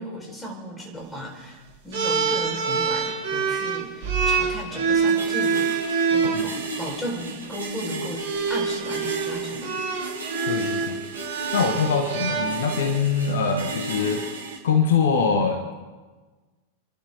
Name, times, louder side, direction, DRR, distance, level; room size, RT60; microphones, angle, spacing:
voice 1, 0.0-8.2 8.5-9.8, equal, 10° left, 0 dB, 4.1 m, -35 dB
sound 1, 1.9-6.4 7.4-7.7 8.2-13.0, right 5 dB, 55° right, 2.8 m, -25 dB
sound 2, 5.1-14.6, right 2 dB, 70° right, 2.8 m, -35 dB
voice 2, 10.4-11.1 11.5-15.7, left 5 dB, 60° left, 6 dB, 1.4 m, -23 dB
29.0 x 12.0 x 3.6 m, 1.3 s
figure-of-eight pair, 90°, 0 cm